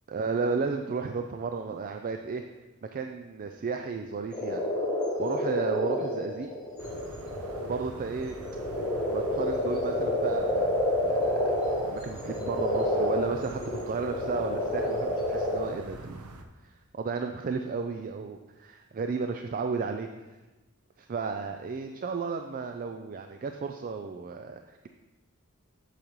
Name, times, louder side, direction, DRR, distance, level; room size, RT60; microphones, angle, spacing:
voice 1, 0.1-2.4 2.8-4.6 5.2-6.5 7.7-8.4 9.1-10.7 11.0-11.5 11.8-16.2 16.6-20.1 21.0-24.9, right 4 dB, 40° right, 5 dB, 0.4 m, -33 dB
sound 1, 4.3-15.6, left 1 dB, 20° left, 1.4 m, -29 dB
sound 2, 6.8-16.4, right 2 dB, 85° right, 0.7 m, -45 dB
8.6 x 6.8 x 3.1 m, 1.1 s
head